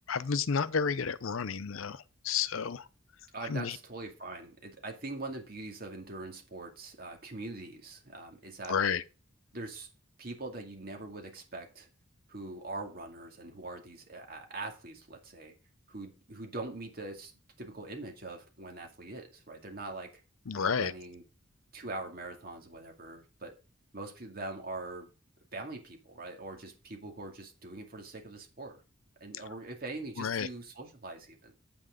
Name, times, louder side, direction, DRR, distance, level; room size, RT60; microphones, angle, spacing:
voice 1, 0.1-2.9 3.4-3.8 8.7-9.0 20.5-20.9 29.3-29.4 30.2-30.5, left 6 dB, 80° left, 0.6 m, -31 dB
voice 2, 3.3-8.8 9.5-9.9 10.2-11.9 12.3-15.5 15.9-17.3 17.6-20.1 20.6-21.2 21.7-23.5 23.9-25.1 25.5-28.8 29.2-31.5, right 2 dB, 45° right, 2.3 m, -42 dB
8.6 x 6.1 x 5.1 m
head